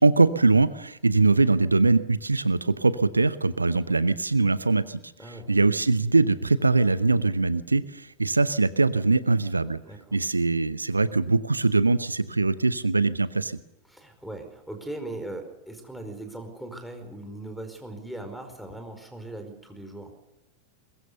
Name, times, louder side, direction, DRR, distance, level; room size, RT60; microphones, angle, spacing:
voice 1, 0.0-9.8 10.1-13.6, right 3 dB, 80° right, 16 dB, 0.8 m, -22 dB
voice 2, 9.8-10.2 13.9-20.1, right 1 dB, ahead, 4 dB, 4.9 m, -39 dB
22.5 x 21.0 x 6.7 m, 0.94 s
figure-of-eight pair, 90°, 0 cm